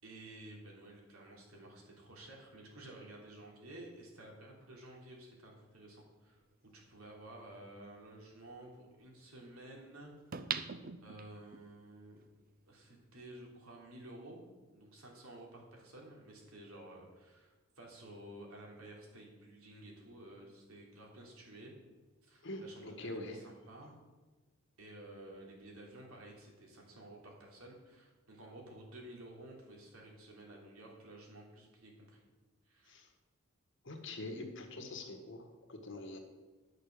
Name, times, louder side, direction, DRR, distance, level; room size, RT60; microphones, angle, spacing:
voice 1, 0.0-6.4 6.7-10.7 11.0-12.2 12.7-14.4 14.7-21.7 22.2-24.0 24.8-32.2 32.6-33.0, right 1 dB, 85° right, -1 dB, 3.2 m, -53 dB
sound 1, 6.7-6.8 10.3-11.6 12.1-12.2, right 7 dB, 45° right, 0.6 m, -40 dB
voice 2, 22.4-23.4 32.9-33.1 33.8-36.2, left 2 dB, 60° left, 5 dB, 1.6 m, -44 dB
11.0 x 6.6 x 6.6 m, 1.3 s
head